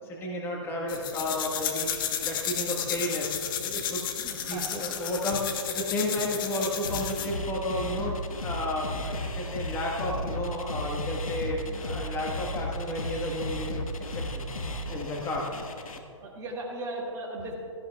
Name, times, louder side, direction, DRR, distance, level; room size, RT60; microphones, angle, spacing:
voice 1, 0.0-3.3 3.6-14.5 14.9-15.4, left 1 dB, 15° left, -2 dB, 1.3 m, -32 dB
sound 1, 0.9-7.4, left 9 dB, 40° left, 1.0 m, -32 dB
sound 2, 6.8-16.0, left 1 dB, 85° left, 1.2 m, -34 dB
voice 2, 16.2-17.5, right 1 dB, 20° right, -3 dB, 2.1 m, -36 dB
16.5 x 13.5 x 2.3 m, 2.5 s
hypercardioid pair, 140°, 17 cm